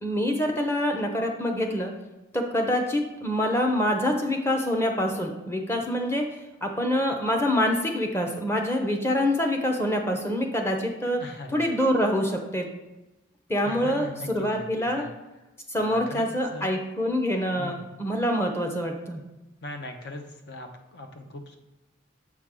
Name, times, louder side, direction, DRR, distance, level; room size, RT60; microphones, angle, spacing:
voice 1, 0.0-1.9 2.3-6.2 6.6-11.2 11.5-12.7 13.5-15.0 15.7-19.2, left 1 dB, 15° left, 3 dB, 0.8 m, -26 dB
voice 2, 11.2-11.7 13.6-15.1 15.8-16.7 17.5-17.9 19.6-21.5, left 1 dB, 60° left, 5 dB, 0.8 m, -40 dB
7.3 x 4.6 x 3.7 m, 1.0 s
head